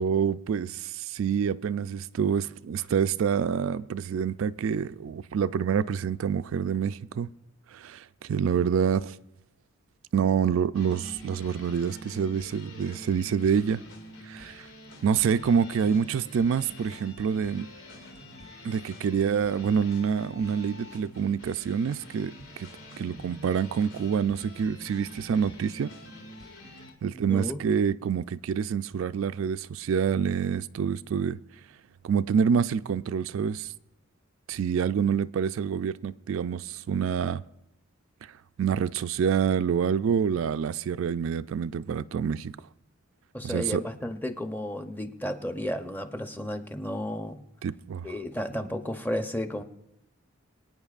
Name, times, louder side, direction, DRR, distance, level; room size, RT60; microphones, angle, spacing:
voice 1, 0.0-7.3 7.7-9.2 10.1-13.8 14.2-14.7 15.0-17.7 18.6-22.7 23.0-25.9 27.0-31.4 32.0-33.7 34.5-37.4 38.2-42.6 43.4-43.8 47.6-48.1, right 7 dB, 75° right, 0.3 m, -27 dB
sound 1, 10.7-26.9, left 1 dB, 80° left, 2.1 m, -46 dB
voice 2, 27.0-27.6 43.3-47.4 48.0-49.6, left 1 dB, 10° left, 0.7 m, -33 dB
24.0 x 9.3 x 2.4 m
head